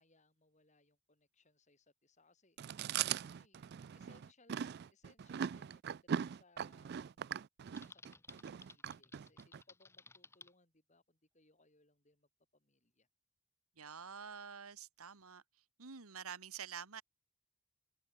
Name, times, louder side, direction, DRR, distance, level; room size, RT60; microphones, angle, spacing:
voice 1, 0.0-3.7 3.9-4.6 4.9-7.4 7.8-13.1, left 2 dB, 35° left, 5.9 m, -70 dB
Chewing mastication, 2.6-9.6, right 8 dB, 50° right, 0.3 m, -40 dB
Typing, 7.8-10.5, left 3 dB, 10° left, 0.8 m, -58 dB
voice 2, 13.8-15.4 15.8-17.0, right 7 dB, 85° right, 1.6 m, -48 dB
open air
head